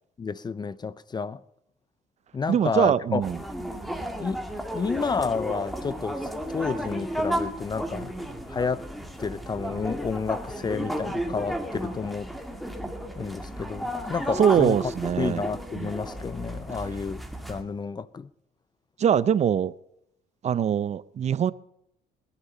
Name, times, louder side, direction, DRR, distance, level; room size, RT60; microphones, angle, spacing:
voice 1, 0.2-1.4 2.3-3.2 4.2-4.4 4.7-8.1 8.5-8.9 9.2-12.3 13.2-14.8 15.2-17.2 17.5-18.3, left 5 dB, 25° left, 0.6 m, -30 dB
voice 2, 2.5-3.4 14.4-15.4 15.7-15.9 19.0-19.7 20.4-21.5, right 8 dB, 40° right, 0.7 m, -23 dB
sound 1, 3.2-17.6, equal, ahead, 2.2 m, -33 dB
20.5 x 11.5 x 5.5 m
cardioid pair, 110°, 17 cm